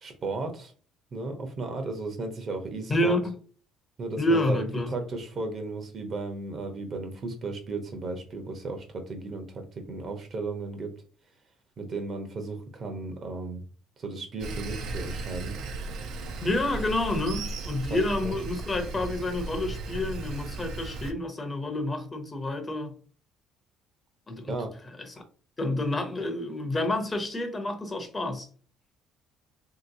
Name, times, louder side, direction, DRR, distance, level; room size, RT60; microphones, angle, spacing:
voice 1, 0.0-0.7 1.1-3.2 4.0-10.9 11.8-13.6 14.0-15.6 17.9-18.3 24.5-24.7, right 3 dB, 45° right, 0.8 m, -35 dB
voice 2, 2.9-3.3 4.2-4.9 16.4-23.0 24.3-24.5 25.0-25.1 25.6-28.5, left 1 dB, 25° left, 0.6 m, -29 dB
Sawing, 14.4-21.1, right 3 dB, 65° right, 0.5 m, -36 dB
3.2 x 2.9 x 2.6 m
cardioid pair, 105°, 0 cm